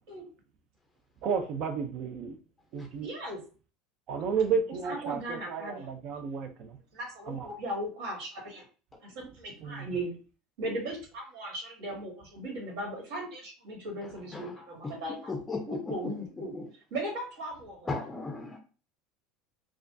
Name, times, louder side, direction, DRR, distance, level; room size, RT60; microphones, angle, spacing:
voice 1, 1.2-2.4 2.7-3.1 4.1-6.8 7.3-7.5 9.6-9.9, right 6 dB, 55° right, 7 dB, 0.5 m, -32 dB
voice 2, 3.0-3.4 4.8-5.9 6.9-8.6 9.0-10.2 10.6-15.3 15.7-16.5 16.9-17.9, right 1 dB, 80° right, -2 dB, 1.9 m, -37 dB
voice 3, 14.3-14.9 15.3-16.7 17.8-18.6, left 3 dB, 15° left, 4 dB, 0.5 m, -37 dB
4.8 x 2.3 x 2.6 m, 0.37 s
supercardioid pair, 130°, 0 cm